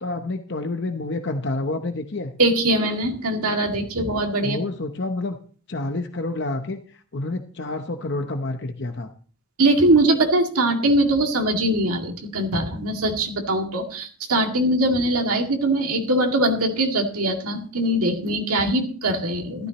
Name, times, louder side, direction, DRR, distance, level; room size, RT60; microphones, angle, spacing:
voice 1, 0.0-2.3 4.4-5.4 5.7-6.8 7.1-9.1, left 2 dB, 50° left, 6 dB, 0.8 m, -28 dB
voice 2, 2.4-4.6 9.6-19.7, right 1 dB, 80° right, 3 dB, 2.2 m, -22 dB
14.0 x 13.0 x 3.0 m, 0.42 s
head